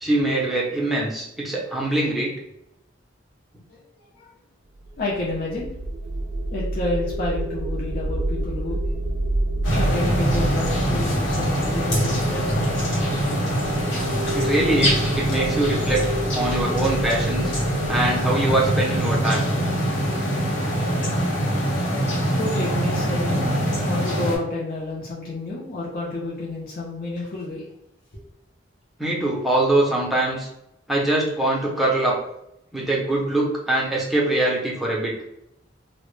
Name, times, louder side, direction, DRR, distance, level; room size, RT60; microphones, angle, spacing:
voice 1, 0.0-2.3 14.3-16.0 16.3-17.5 17.9-19.5 29.0-30.5 30.9-32.2 32.7-35.1, right 2 dB, ahead, -5 dB, 0.6 m, -23 dB
voice 2, 3.7-4.3 4.9-5.8 6.5-8.8 9.7-12.7 22.4-23.4 23.8-27.7, left 2 dB, 50° left, -5 dB, 0.6 m, -30 dB
sound 1, 4.8-20.0, right 1 dB, 80° right, 0.3 m, -29 dB
sound 2, 9.6-24.4, equal, 90° left, 0.8 m, -23 dB
2.1 x 2.0 x 3.0 m, 0.82 s
head